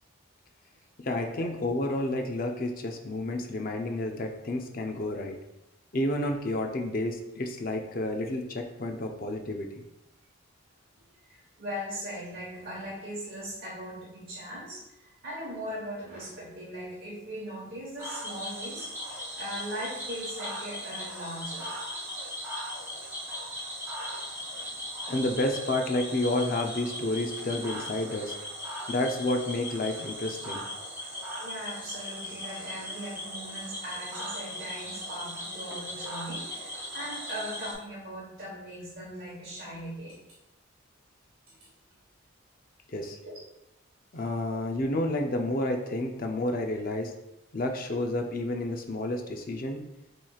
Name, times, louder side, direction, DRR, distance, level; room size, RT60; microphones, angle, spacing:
voice 1, 1.0-5.4 5.9-9.8 25.1-28.3 28.9-30.6 42.9-43.2 44.1-47.1 47.5-49.8, left 1 dB, 40° left, 4 dB, 0.5 m, -30 dB
voice 2, 11.2-21.7 31.4-40.2 41.5-41.7 43.2-43.3 44.5-44.6, equal, 45° right, -7 dB, 1.2 m, -39 dB
Cricket / Frog, 18.0-37.7, equal, 10° right, 1.2 m, -38 dB
7.3 x 3.1 x 2.3 m, 0.91 s
head